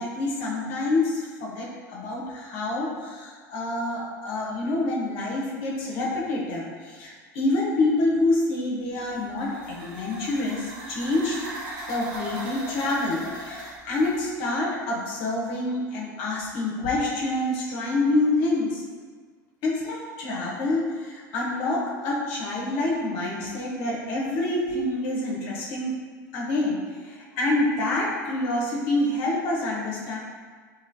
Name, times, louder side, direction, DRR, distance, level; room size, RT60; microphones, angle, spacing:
voice 1, 0.0-11.5 11.9-18.8 19.6-25.9 26.3-30.2, left 2 dB, 60° left, -3 dB, 0.6 m, -27 dB
sound 1, 9.0-14.2, right 1 dB, 45° right, 0.9 m, -38 dB
3.0 x 2.8 x 2.5 m, 1.5 s
hypercardioid pair, 85°, 10 cm